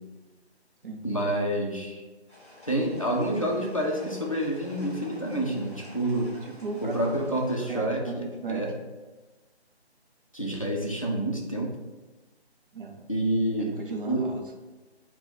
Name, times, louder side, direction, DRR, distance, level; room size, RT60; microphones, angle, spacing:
voice 1, 1.0-2.0 2.7-6.3 6.8-8.7 10.3-11.7 13.1-13.8 14.0-14.3, right 1 dB, 30° left, -1 dB, 0.4 m, -28 dB
sound 1, 2.3-7.6, left 1 dB, 15° right, 0.8 m, -50 dB
voice 2, 6.4-7.2 7.7-8.7 12.7-13.1 13.6-14.4, right 4 dB, 50° right, 2 dB, 0.6 m, -36 dB
3.9 x 2.2 x 3.9 m, 1.3 s
figure-of-eight pair, 165°, 33 cm